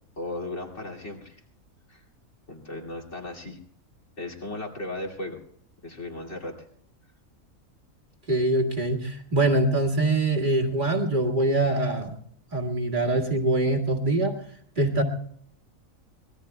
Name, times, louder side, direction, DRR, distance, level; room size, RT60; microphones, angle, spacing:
voice 1, 0.2-1.4 1.9-2.0 2.5-3.6 4.2-5.4 5.8-6.5, left 2 dB, 55° left, 3 dB, 2.9 m, -36 dB
voice 2, 8.3-12.2 12.5-14.4 14.8-15.0, right 2 dB, 35° right, 1 dB, 2.0 m, -24 dB
25.0 x 20.0 x 2.3 m, 0.64 s
omnidirectional pair, 1.4 m